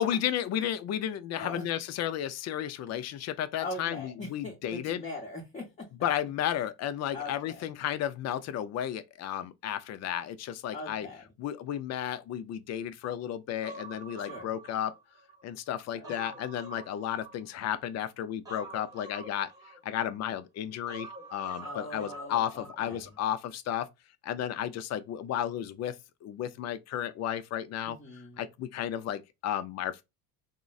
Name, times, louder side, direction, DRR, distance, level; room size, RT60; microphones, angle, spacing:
voice 1, 0.0-5.0 6.0-11.1 11.4-14.9 15.4-19.5 19.8-23.9 24.2-28.0 28.4-30.0, left 10 dB, 40° left, 0.4 m, -33 dB
voice 2, 3.6-5.7 7.1-7.6 10.7-11.3 14.2-14.5 15.9-16.4 21.6-23.0 27.9-28.5, left 2 dB, 15° left, 0.8 m, -41 dB
Human voice, 13.6-15.4 15.8-17.8 18.5-20.2 20.9-22.8 23.1-23.2, right 2 dB, 10° right, 1.0 m, -46 dB
3.7 x 2.1 x 2.3 m
cardioid pair, 120°, 40 cm